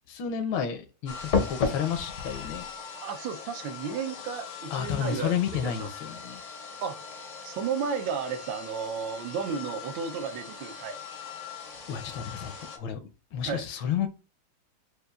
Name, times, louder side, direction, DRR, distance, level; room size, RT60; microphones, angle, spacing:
voice 1, 0.1-2.7 4.7-6.4 11.9-14.1, left 8 dB, 80° left, 1.4 m, -31 dB
sound 1, 1.1-12.8, left 5 dB, 60° left, 0.8 m, -36 dB
voice 2, 3.0-5.9 6.8-7.0 7.4-11.0 13.5-13.6, right 6 dB, 75° right, 1.3 m, -33 dB
6.5 x 2.3 x 2.3 m
omnidirectional pair, 2.2 m